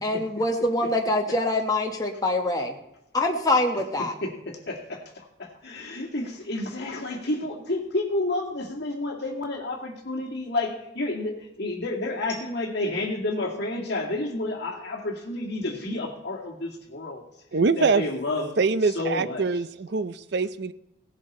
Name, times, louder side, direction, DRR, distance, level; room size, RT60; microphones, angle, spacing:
voice 1, 0.0-2.8 3.1-4.1, left 2 dB, 20° left, 2 dB, 1.1 m, -24 dB
voice 2, 4.2-17.2 17.8-18.5 18.9-19.5, left 2 dB, 55° left, -1 dB, 2.2 m, -30 dB
voice 3, 17.5-18.0 18.6-20.7, right 4 dB, 55° right, 14 dB, 0.5 m, -24 dB
17.5 x 10.5 x 4.3 m, 0.85 s
head